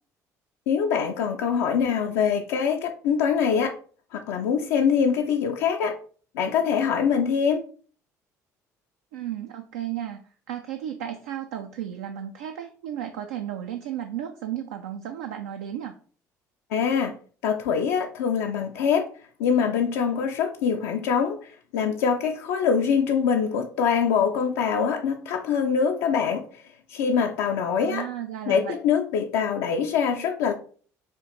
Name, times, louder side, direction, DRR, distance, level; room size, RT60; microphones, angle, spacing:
voice 1, 0.7-3.7 4.1-6.0 6.3-7.6 16.7-17.1 17.4-19.0 19.4-26.6 26.9-28.1 28.5-30.5, left 6 dB, 65° left, 2 dB, 0.4 m, -24 dB
voice 2, 9.1-15.9 27.8-28.7, right 10 dB, 70° right, 5 dB, 0.4 m, -34 dB
5.7 x 2.5 x 2.9 m, 0.43 s
figure-of-eight pair, 55°, 9 cm